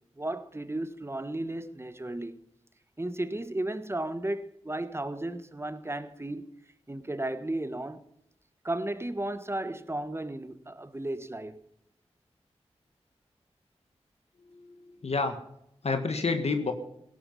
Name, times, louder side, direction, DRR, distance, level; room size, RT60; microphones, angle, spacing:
voice 1, 0.2-2.4 3.0-6.5 6.9-8.0 8.6-11.6, right 1 dB, 20° right, 1.4 m, -34 dB
voice 2, 14.5-15.4 15.8-16.7, left 4 dB, 65° left, 1.7 m, -29 dB
17.5 x 11.5 x 5.5 m
cardioid pair, 45°, 11 cm